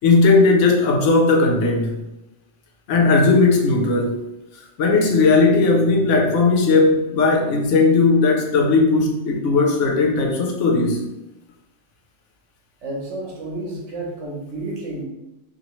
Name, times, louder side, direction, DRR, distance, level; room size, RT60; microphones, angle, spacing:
voice 1, 0.0-2.0 2.9-4.2 4.8-11.0, left 3 dB, 80° left, 2 dB, 0.9 m, -17 dB
voice 2, 12.8-15.0, right 2 dB, 70° right, -2 dB, 1.1 m, -31 dB
2.8 x 2.6 x 3.0 m, 0.95 s
omnidirectional pair, 1.3 m